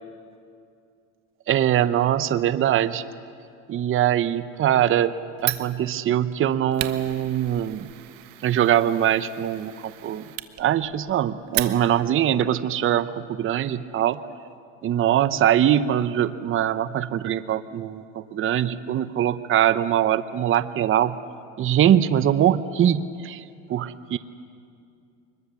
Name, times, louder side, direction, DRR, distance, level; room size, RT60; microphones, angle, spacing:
voice 1, 1.5-3.0 3.7-5.1 5.4-7.9 8.4-10.2 10.6-14.2 14.8-21.2 21.6-23.4 23.7-24.2, right 11 dB, 35° right, 13 dB, 0.8 m, -22 dB
Fire, 5.4-12.2, right 16 dB, 65° right, 1.3 m, -35 dB
24.5 x 21.5 x 7.0 m, 2.4 s
supercardioid pair, 105°, 37 cm